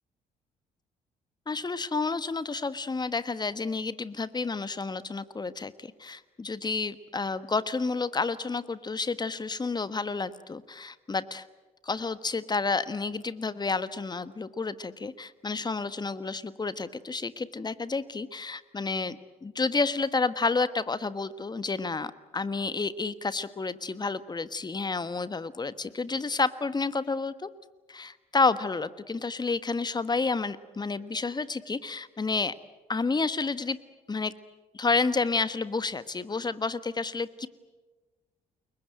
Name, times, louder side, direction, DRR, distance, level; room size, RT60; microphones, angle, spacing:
voice 1, 1.5-11.4 11.8-27.5 27.9-32.5 32.9-33.8 34.1-34.3 34.7-37.5, left 4 dB, 20° left, 16 dB, 1.3 m, -30 dB
30.0 x 22.5 x 7.8 m, 1.3 s
figure-of-eight pair, 45°, 19 cm